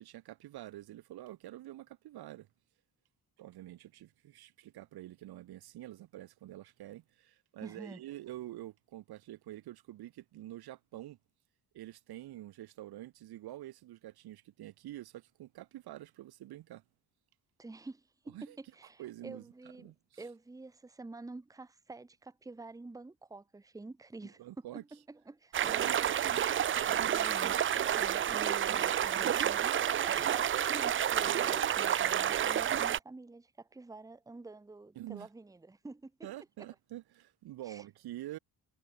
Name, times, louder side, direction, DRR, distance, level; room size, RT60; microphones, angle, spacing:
voice 1, 0.0-2.5 3.4-11.2 11.7-16.8 18.3-18.6 19.0-19.4 19.8-20.0 24.4-24.8 25.8-26.3 35.0-35.3 36.2-38.4, right 14 dB, 80° right, 1.9 m, -47 dB
voice 2, 7.6-8.0 17.6-25.9 26.9-36.3 37.6-37.8, right 3 dB, 10° right, 1.2 m, -48 dB
sound 1, 25.5-33.0, right 10 dB, 35° right, 0.5 m, -30 dB
cardioid pair, 160°, 37 cm